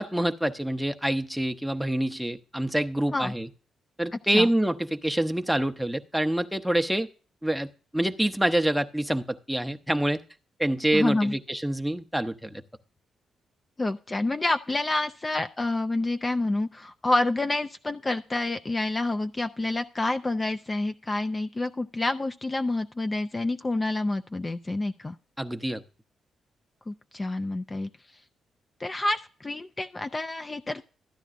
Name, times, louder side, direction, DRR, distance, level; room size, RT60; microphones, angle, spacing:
voice 1, 0.0-3.5 4.0-7.1 7.4-7.7 7.9-10.2 10.6-12.6 25.4-25.8, right 1 dB, ahead, 7 dB, 0.7 m, -26 dB
voice 2, 10.9-11.3 13.8-25.2 26.9-27.9 28.8-30.8, left 2 dB, 25° left, 8 dB, 0.4 m, -28 dB
13.0 x 9.8 x 2.5 m, 0.38 s
supercardioid pair, 65°, 0 cm